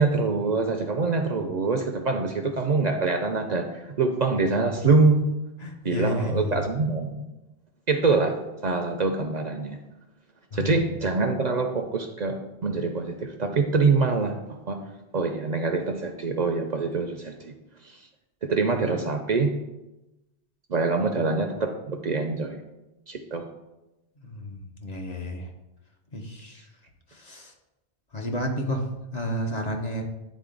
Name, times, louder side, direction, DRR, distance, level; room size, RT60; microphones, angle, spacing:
voice 1, 0.0-5.3 5.8-7.1 7.9-9.8 10.5-14.3 14.7-14.8 15.1-17.5 17.8-18.0 18.4-19.5 20.7-22.6 23.1-23.5, right 3 dB, 50° right, 5 dB, 0.6 m, -25 dB
voice 2, 5.6-6.6 10.5-10.7 24.2-25.5 26.1-26.6 27.1-27.5 28.1-30.0, equal, 45° left, 2 dB, 0.8 m, -31 dB
9.3 x 3.7 x 3.8 m, 0.99 s
omnidirectional pair, 1.0 m